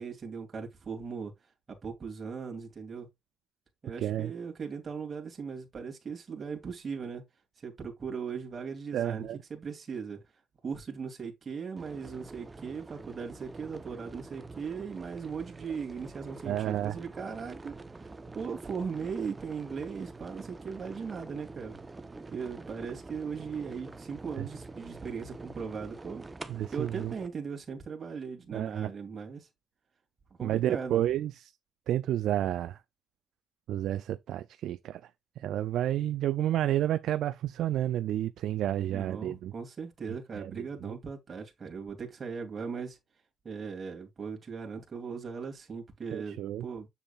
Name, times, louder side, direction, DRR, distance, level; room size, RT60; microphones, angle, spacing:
voice 1, 0.0-1.3 1.7-3.1 3.8-7.2 7.6-10.2 10.6-21.8 22.3-26.2 26.7-29.5 30.4-31.0 38.9-43.0 43.4-46.9, right 5 dB, 40° right, 2.6 m, -38 dB
voice 2, 4.0-4.3 8.9-9.4 16.4-17.0 24.4-24.5 26.5-27.1 28.5-28.9 30.4-31.5 31.9-32.8 33.7-35.0 35.4-39.5 40.4-40.6 40.8-40.9 46.1-46.7, right 12 dB, 80° right, 0.4 m, -30 dB
sound 1, 11.8-27.3, right 3 dB, 20° right, 0.9 m, -46 dB
7.2 x 7.0 x 2.5 m
cardioid pair, 85°, 0 cm